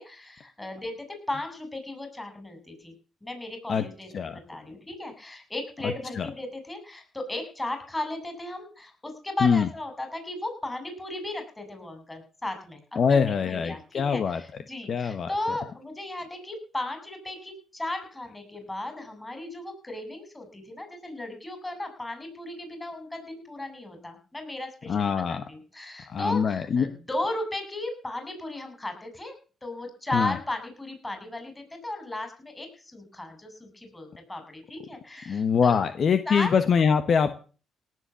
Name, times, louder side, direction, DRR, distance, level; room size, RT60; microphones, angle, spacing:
voice 1, 0.0-2.9 3.2-13.8 14.1-29.3 29.6-35.8 36.2-36.9, left 1 dB, 15° left, 6 dB, 6.8 m, -36 dB
voice 2, 13.0-14.4 14.9-15.3 24.9-25.4 26.1-26.9 30.1-30.3 35.3-37.4, left 6 dB, 55° left, 10 dB, 1.3 m, -23 dB
18.5 x 7.8 x 7.0 m, 0.38 s
cardioid pair, 90°, 0 cm